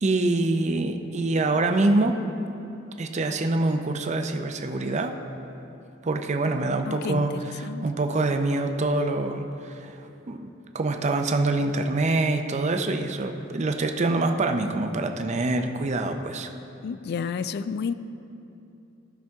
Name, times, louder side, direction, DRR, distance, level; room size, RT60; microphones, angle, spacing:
voice 1, 0.0-2.2 3.0-5.2 6.0-10.4 10.7-16.5, right 2 dB, 35° right, 5 dB, 0.5 m, -25 dB
voice 2, 6.9-7.3 7.6-7.8 16.8-17.9, left 6 dB, 55° left, 13 dB, 0.3 m, -30 dB
15.0 x 5.9 x 3.5 m, 2.8 s
head